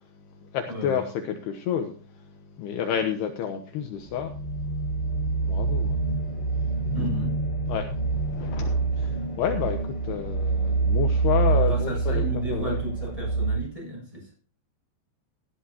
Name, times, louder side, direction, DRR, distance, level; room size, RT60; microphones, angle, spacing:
voice 1, 0.1-7.1 7.7-12.8, left 8 dB, 70° left, 2.9 m, -31 dB
voice 2, 0.7-1.0 6.9-7.3 11.6-14.3, equal, 5° right, 7.0 m, -33 dB
sound 1, 4.1-13.6, right 3 dB, 15° left, 2.1 m, -26 dB
16.5 x 12.5 x 2.9 m
omnidirectional pair, 5.2 m